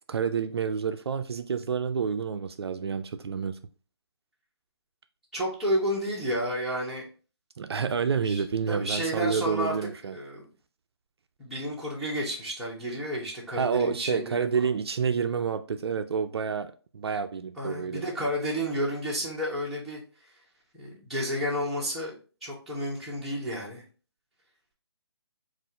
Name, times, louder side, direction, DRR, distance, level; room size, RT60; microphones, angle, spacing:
voice 1, 0.1-3.6 7.6-10.2 13.6-18.0, right 6 dB, 65° right, 0.4 m, -29 dB
voice 2, 5.3-7.0 8.2-9.7 10.1-10.4 11.4-14.4 17.6-20.0 20.7-23.8, equal, ahead, 1.0 m, -31 dB
4.1 x 2.5 x 3.7 m
hypercardioid pair, 160°, 14 cm